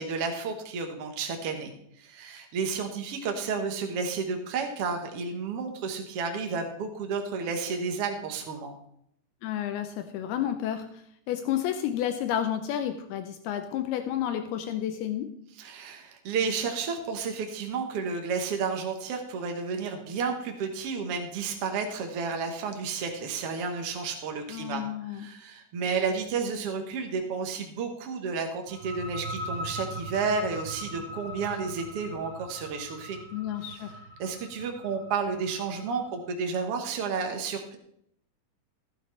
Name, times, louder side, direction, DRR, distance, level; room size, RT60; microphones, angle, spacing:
voice 1, 0.0-1.7 2.0-8.7 15.6-33.2 34.2-37.8, right 5 dB, 70° right, 4 dB, 1.4 m, -31 dB
voice 2, 9.4-15.3 24.5-25.3 33.3-34.0, left 10 dB, 80° left, 8 dB, 2.6 m, -31 dB
sound 1, 28.7-36.2, equal, 40° right, 5.6 m, -40 dB
15.0 x 11.0 x 3.3 m, 0.71 s
omnidirectional pair, 4.6 m